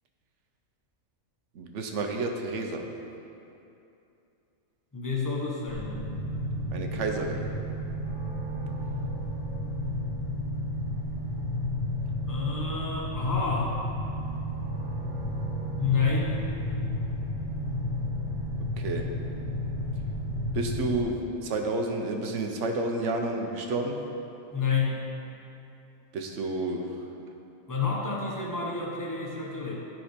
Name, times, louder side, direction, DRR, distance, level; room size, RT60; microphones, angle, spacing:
voice 1, 1.5-2.9 6.7-7.5 18.8-19.1 20.5-21.2 21.4-24.0 26.1-26.9, right 2 dB, 65° right, 3 dB, 1.0 m, -30 dB
voice 2, 4.9-6.0 12.3-13.8 15.8-16.5 24.5-25.1 27.7-29.7, left 5 dB, 15° left, -3 dB, 1.0 m, -29 dB
sound 1, 5.7-21.0, equal, 60° left, 1.5 m, -32 dB
9.9 x 4.2 x 5.0 m, 2.8 s
omnidirectional pair, 1.4 m